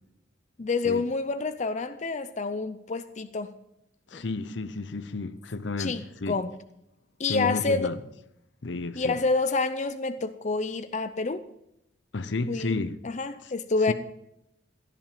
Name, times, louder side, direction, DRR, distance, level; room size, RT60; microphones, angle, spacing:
voice 1, 0.6-3.5 4.1-4.2 5.8-6.5 7.2-7.9 9.0-11.4 12.5-12.8 13.0-13.9, left 3 dB, 40° left, 0.6 m, -28 dB
voice 2, 4.1-6.4 7.3-8.0 8.6-9.2 12.1-13.0 13.4-13.5 13.9-14.0, left 3 dB, 70° left, 0.8 m, -32 dB
16.0 x 10.5 x 5.5 m
head